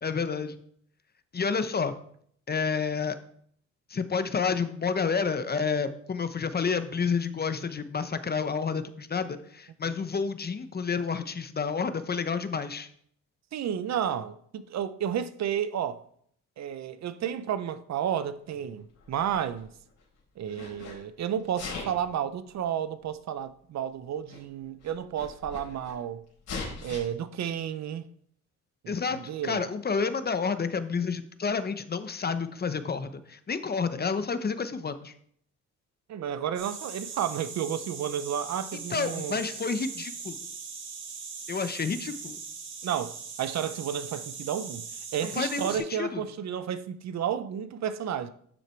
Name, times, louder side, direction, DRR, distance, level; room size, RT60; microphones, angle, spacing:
voice 1, 0.0-0.6 1.3-1.9 2.5-3.2 3.9-12.9 28.9-35.1 38.9-40.4 41.5-42.4 45.3-46.2, left 5 dB, 30° left, 1.0 m, -30 dB
voice 2, 13.5-16.0 16.6-19.7 20.4-26.2 26.8-28.1 28.8-29.7 36.1-39.5 42.8-44.8 45.1-48.3, right 9 dB, 60° right, 0.8 m, -32 dB
Sneeze, 19.0-20.0 20.4-21.0 21.5-22.1 23.0-23.1 24.0-24.1 24.3-24.4 24.8-25.9 26.4-27.0, left 4 dB, 65° left, 4.1 m, -39 dB
sound 1, 36.5-45.8, right 5 dB, 85° right, 2.4 m, -40 dB
11.5 x 6.6 x 4.5 m
cardioid pair, 90°, 30 cm